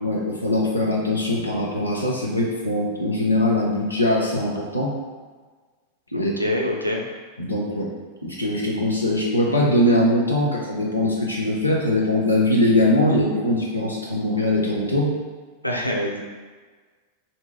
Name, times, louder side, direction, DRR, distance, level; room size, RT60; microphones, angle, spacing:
voice 1, 0.0-4.9 6.1-6.3 7.4-7.9 8.2-15.1, left 1 dB, 85° left, -3 dB, 0.5 m, -21 dB
voice 2, 6.1-7.0 15.6-16.2, left 1 dB, 90° right, 0 dB, 0.5 m, -25 dB
3.0 x 2.7 x 3.5 m, 1.4 s
figure-of-eight pair, 90°, 0 cm